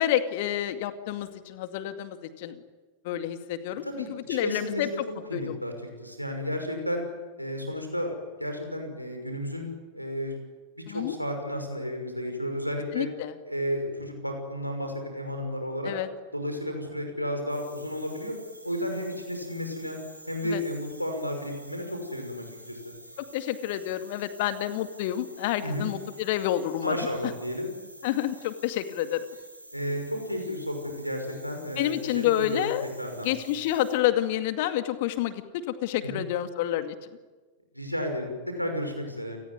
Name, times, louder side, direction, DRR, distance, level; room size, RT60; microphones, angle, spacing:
voice 1, 0.0-2.6 3.0-4.9 5.3-5.6 10.9-11.1 12.9-13.3 15.8-16.1 20.4-20.6 23.2-27.0 28.0-29.2 31.8-32.9 33.2-37.0, left 12 dB, 50° left, 9 dB, 2.2 m, -29 dB
voice 2, 3.8-4.9 5.3-5.7 6.0-7.0 7.4-9.7 9.9-10.3 10.8-13.1 13.5-15.9 16.3-18.4 18.6-20.0 20.3-23.0 25.6-25.9 26.8-27.7 29.7-32.7 33.0-33.3 36.0-36.2 37.7-39.4, equal, 90° left, 4 dB, 6.0 m, -32 dB
sound 1, 17.5-33.9, right 1 dB, 90° right, 7.6 m, -49 dB
29.0 x 19.5 x 9.7 m, 1.3 s
figure-of-eight pair, 90°, 0 cm